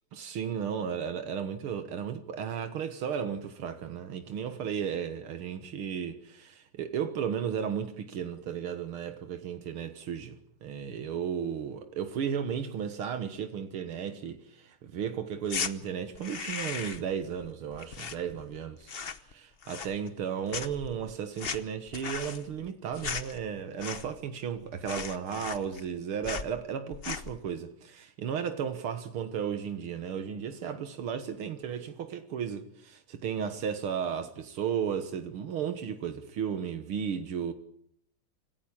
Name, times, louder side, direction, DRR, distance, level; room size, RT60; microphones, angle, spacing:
voice 1, 0.1-18.9 19.3-37.5, right 7 dB, 80° right, 2.2 m, -34 dB
Moving and Stopping, 15.4-15.7 16.1-17.1 17.4-18.6 18.8-19.3 19.6-20.2 20.5-24.3 24.6-24.7 24.9-26.0 26.2-26.5 26.9-27.4, left 6 dB, 45° left, 0.7 m, -37 dB
27.0 x 15.0 x 8.7 m
omnidirectional pair, 2.3 m